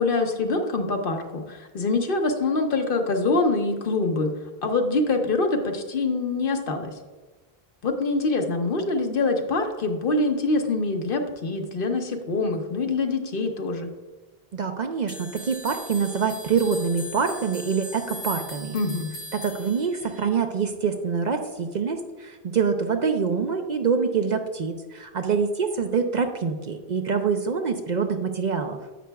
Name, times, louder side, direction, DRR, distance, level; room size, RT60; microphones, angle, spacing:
voice 1, 0.0-4.3 4.6-6.9 7.8-13.9 18.7-19.1, left 3 dB, 60° left, 5 dB, 1.0 m, -25 dB
voice 2, 14.5-18.7 19.3-28.8, right 5 dB, 55° right, 6 dB, 0.6 m, -25 dB
sound 1, 15.1-20.3, equal, 85° left, 3.1 m, -39 dB
10.0 x 7.7 x 2.3 m, 1.3 s
omnidirectional pair, 1.0 m